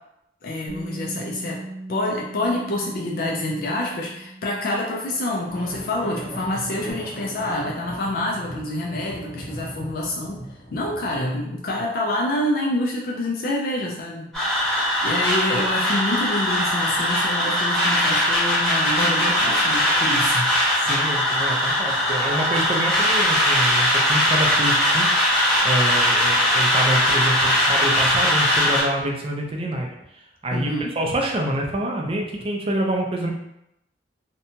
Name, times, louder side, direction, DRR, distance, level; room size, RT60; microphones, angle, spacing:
voice 1, 0.4-1.6 1.9-10.4 10.7-14.3 15.0-20.5 30.5-30.9, left 1 dB, 55° left, -2 dB, 0.4 m, -27 dB
Bass guitar, 0.7-6.9, right 1 dB, 60° right, 0.9 m, -40 dB
sound 1, 5.5-11.2, equal, 75° left, 0.9 m, -37 dB
sound 2, 14.3-28.8, left 1 dB, 5° left, 1.0 m, -20 dB
voice 2, 20.8-29.9 30.4-33.3, right 1 dB, 30° right, 0 dB, 0.4 m, -26 dB
2.7 x 2.2 x 2.7 m, 0.83 s
head